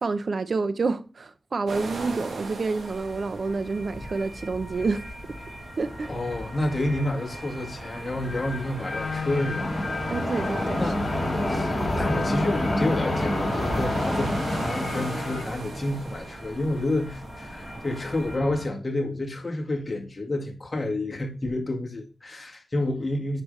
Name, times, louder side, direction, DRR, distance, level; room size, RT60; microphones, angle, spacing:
voice 1, 0.0-5.0 5.8-6.1 10.1-10.9, right 4 dB, 65° right, 0.8 m, -28 dB
sound 1, 1.7-18.4, right 3 dB, 90° right, 1.8 m, -40 dB
sound 2, 2.8-18.7, left 1 dB, 20° left, 3.7 m, -31 dB
voice 2, 6.1-9.7 10.8-11.1 11.5-23.4, left 1 dB, 40° left, 1.9 m, -29 dB
sound 3, 8.8-15.4, left 5 dB, 70° left, 1.9 m, -35 dB
9.3 x 5.5 x 3.3 m
cardioid pair, 55°, 0 cm